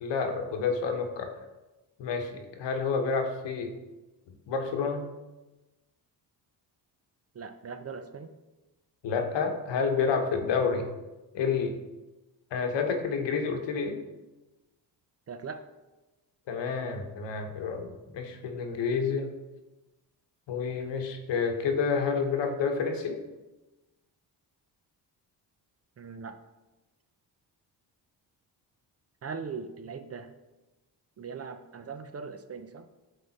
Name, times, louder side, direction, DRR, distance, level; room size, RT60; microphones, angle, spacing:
voice 1, 0.0-1.3 2.0-3.7 4.5-5.1 9.0-10.9 11.3-11.7 12.5-14.0 16.5-19.3 20.5-23.2, left 5 dB, 75° left, 5 dB, 1.1 m, -29 dB
voice 2, 7.3-8.3 15.3-15.6 26.0-26.4 29.2-30.3 31.2-32.9, right 5 dB, 35° right, 9 dB, 0.5 m, -40 dB
8.9 x 3.7 x 4.2 m, 1.1 s
cardioid pair, 90°, 44 cm